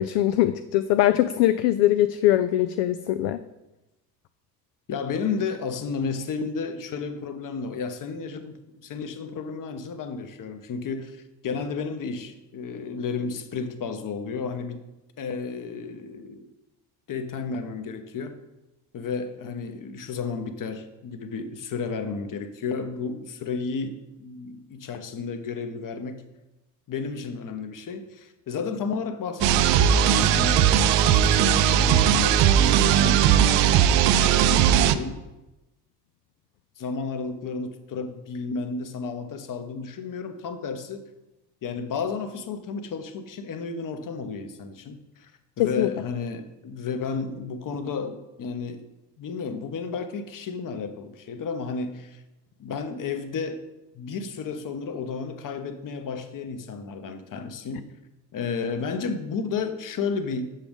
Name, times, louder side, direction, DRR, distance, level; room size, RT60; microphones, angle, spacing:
voice 1, 0.0-3.4 45.6-45.9, left 13 dB, 55° left, 11 dB, 0.5 m, -22 dB
voice 2, 4.9-14.9 15.2-16.5 17.1-18.4 18.9-26.3 26.9-30.7 31.0-35.2 36.8-41.1 41.6-45.3 45.6-48.9 49.2-52.2 52.6-53.6 53.9-57.9 58.3-60.5, left 5 dB, 40° left, 8 dB, 1.0 m, -32 dB
sound 1, 29.4-35.0, right 9 dB, 60° right, 0.6 m, -19 dB
7.6 x 6.9 x 3.5 m, 0.99 s
hypercardioid pair, 55°, 50 cm